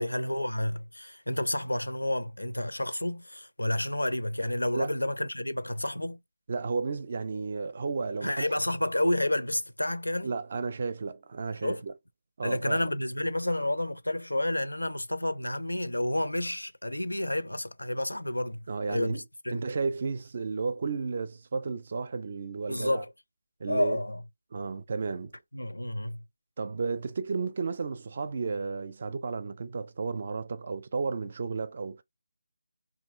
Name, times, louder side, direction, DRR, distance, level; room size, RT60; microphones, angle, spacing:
voice 1, 0.0-6.2 8.2-10.3 11.6-11.8 12.4-18.6 18.9-19.6 22.7-23.1 23.7-24.2 25.5-26.2, left 1 dB, 80° left, 0.5 m, -30 dB
voice 2, 6.5-8.5 10.2-11.9 12.4-12.8 18.7-19.2 19.5-23.0 23.6-24.0 24.5-25.3 26.6-32.0, right 4 dB, 40° right, 0.4 m, -33 dB
2.9 x 2.6 x 3.5 m
figure-of-eight pair, 155°, 0 cm